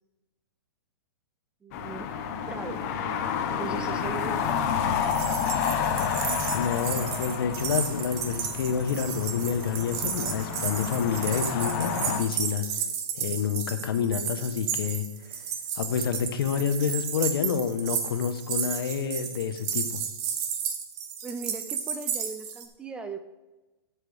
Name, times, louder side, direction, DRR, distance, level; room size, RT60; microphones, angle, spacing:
voice 1, 1.6-2.9 3.6-4.7 21.2-23.2, right 4 dB, 10° right, 8 dB, 0.4 m, -38 dB
sound 1, 1.7-12.2, left 7 dB, 40° left, 1.0 m, -30 dB
sound 2, 4.9-22.7, right 8 dB, 35° right, 1.2 m, -33 dB
voice 2, 6.5-12.7 13.1-15.0 15.3-15.4 15.8-20.0, left 7 dB, 65° left, 8 dB, 1.1 m, -28 dB
11.5 x 7.6 x 3.5 m, 1.1 s
hypercardioid pair, 155°, 13 cm